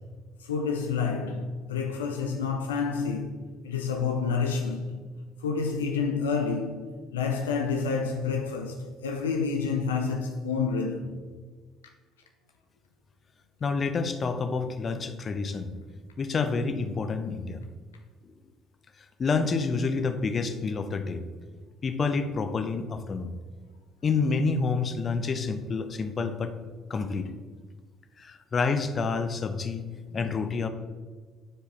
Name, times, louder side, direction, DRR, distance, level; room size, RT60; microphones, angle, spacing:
voice 1, 0.4-3.4 3.6-4.9 5.4-11.2, left 5 dB, 80° left, 0.4 m, -29 dB
voice 2, 13.6-15.7 16.2-17.6 19.2-21.2 21.8-23.3 24.0-26.5 26.9-27.3 28.2-29.8 30.1-30.7, left 4 dB, 40° left, 0.7 m, -28 dB
9.8 x 4.7 x 3.3 m
figure-of-eight pair, 50°, 0 cm